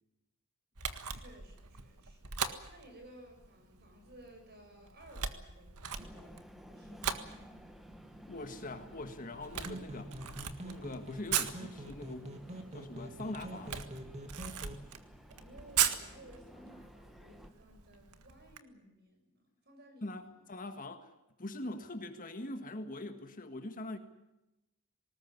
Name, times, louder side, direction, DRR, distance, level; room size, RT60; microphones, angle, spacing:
Camera, 0.7-18.6, right 8 dB, 90° right, 1.7 m, -40 dB
voice 1, 1.1-2.4 2.7-7.7 15.3-20.5, right 1 dB, 45° right, 4 dB, 6.9 m, -57 dB
sound 1, 6.0-17.5, equal, ahead, 1.5 m, -55 dB
voice 2, 8.3-10.1 10.6-12.3 12.7-13.8 20.0-21.1 21.4-24.0, left 2 dB, 40° left, 7 dB, 1.8 m, -42 dB
sound 2, 9.6-14.8, right 1 dB, 30° right, 2.6 m, -45 dB
20.0 x 19.5 x 9.8 m, 0.95 s
head